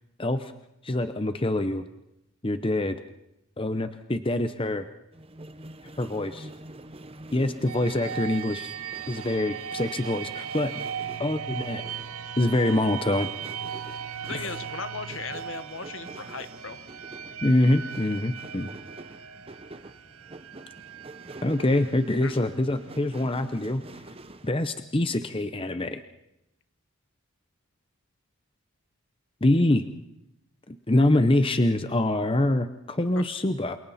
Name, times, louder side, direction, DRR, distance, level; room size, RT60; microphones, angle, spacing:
voice 1, 0.2-0.5 0.8-1.8 2.4-3.0 3.6-4.8 6.0-6.5 7.3-8.7 9.1-10.7 11.2-11.9 12.4-13.3 14.3-14.5 17.4-18.7 21.4-23.8 24.4-26.0 29.4-29.8 30.7-33.8, left 1 dB, 25° left, 9 dB, 0.8 m, -25 dB
sound 1, 5.1-24.5, right 2 dB, 25° right, 0.9 m, -46 dB
sound 2, 7.7-23.3, right 8 dB, 80° right, 0.9 m, -38 dB
voice 2, 14.2-16.8 22.2-22.4 33.1-33.2, left 5 dB, 60° left, 10 dB, 1.4 m, -37 dB
28.0 x 28.0 x 4.3 m, 0.86 s
head